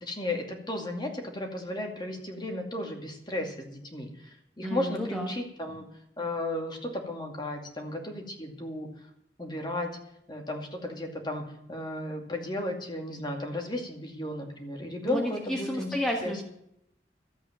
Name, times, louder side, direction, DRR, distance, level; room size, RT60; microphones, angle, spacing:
voice 1, 0.0-4.1 4.6-5.8 6.2-8.9 9.4-9.9 10.3-11.4 11.7-15.9 16.2-16.4, left 1 dB, 25° left, 2 dB, 2.4 m, -34 dB
voice 2, 4.6-5.3 15.0-16.4, left 1 dB, 5° left, 0 dB, 1.5 m, -31 dB
13.5 x 8.3 x 7.5 m, 0.76 s
head